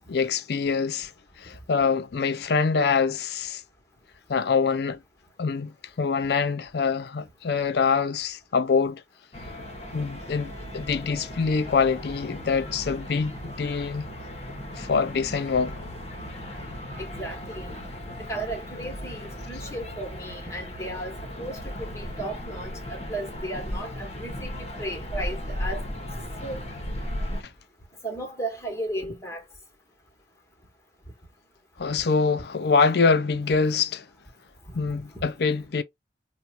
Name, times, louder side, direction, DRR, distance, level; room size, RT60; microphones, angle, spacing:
voice 1, 0.1-1.1 1.4-3.6 4.3-5.0 5.4-9.0 9.9-14.1 14.8-15.8 31.8-34.1 34.7-35.8, left 5 dB, 65° left, 0.5 m, -25 dB
sound 1, 9.3-27.4, equal, 35° left, 0.9 m, -36 dB
voice 2, 17.0-17.8 18.3-25.8 26.4-26.6 28.0-29.4, right 1 dB, 15° left, 1.2 m, -35 dB
4.3 x 2.2 x 2.5 m
head